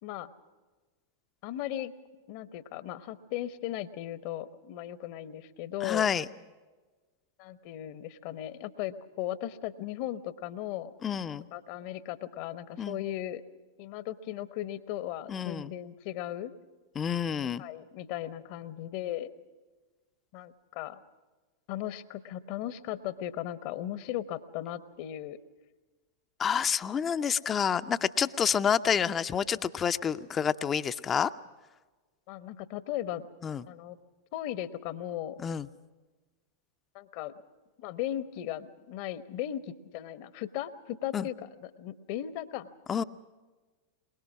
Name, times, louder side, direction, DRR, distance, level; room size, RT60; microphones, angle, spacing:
voice 1, 1.4-1.9 2.3-6.1 7.4-10.9 11.5-13.4 13.8-16.5 17.6-19.3 20.3-21.0 21.7-25.4 32.3-33.3 33.7-34.0 34.3-35.4 36.9-37.3 37.8-42.7, left 12 dB, 45° left, 15 dB, 1.0 m, -37 dB
voice 2, 5.8-6.3 11.0-11.4 12.8-13.0 15.3-15.7 17.0-17.6 26.4-31.3 33.4-33.6 35.4-35.7 41.1-41.3 42.9-43.0, left 7 dB, 25° left, 12 dB, 0.6 m, -28 dB
23.0 x 21.0 x 6.1 m, 1.3 s
figure-of-eight pair, 90°, 0 cm